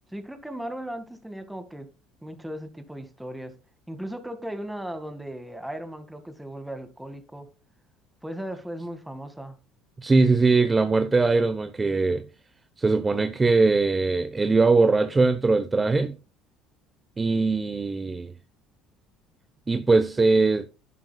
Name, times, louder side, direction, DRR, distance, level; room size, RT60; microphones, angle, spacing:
voice 1, 0.1-1.9 2.2-3.6 3.9-7.5 8.2-9.6, right 1 dB, 5° right, 1.9 m, -37 dB
voice 2, 10.0-12.2 12.8-16.1 17.2-18.3 19.7-20.7, right 3 dB, 20° right, 0.8 m, -21 dB
11.0 x 10.5 x 2.3 m
supercardioid pair, 90°, 0 cm